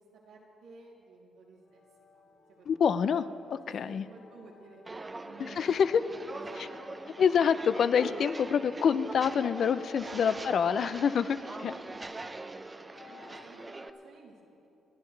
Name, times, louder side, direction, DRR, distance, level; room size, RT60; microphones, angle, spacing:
voice 1, 0.2-1.8 2.1-2.3 2.6-2.9 3.8-7.2 10.0-10.5 11.1-12.3 13.0-14.7, right 3 dB, 85° right, -6 dB, 3.1 m, -53 dB
sound 1, 1.6-14.0, left 2 dB, 90° left, 3.3 m, -54 dB
voice 2, 2.7-4.0 5.4-6.0 7.2-11.7, left 7 dB, 60° left, 13 dB, 0.5 m, -27 dB
Walk footsteps, 4.8-13.9, right 2 dB, 20° right, 0.6 m, -43 dB
28.0 x 11.5 x 3.3 m, 2.9 s
cardioid pair, 90°, 0 cm